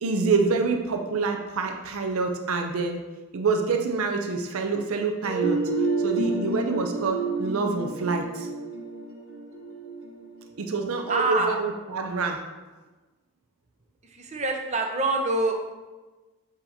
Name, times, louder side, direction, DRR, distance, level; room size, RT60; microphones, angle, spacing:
voice 1, 0.0-3.1 3.3-5.6 6.0-8.5 10.6-12.5, right 4 dB, 90° right, 3 dB, 0.5 m, -26 dB
sound 1, 5.2-11.0, right 3 dB, 70° right, 1.2 m, -29 dB
voice 2, 11.1-11.5 14.1-15.7, right 2 dB, 30° right, 3 dB, 0.7 m, -25 dB
7.7 x 2.8 x 4.2 m, 1.2 s
head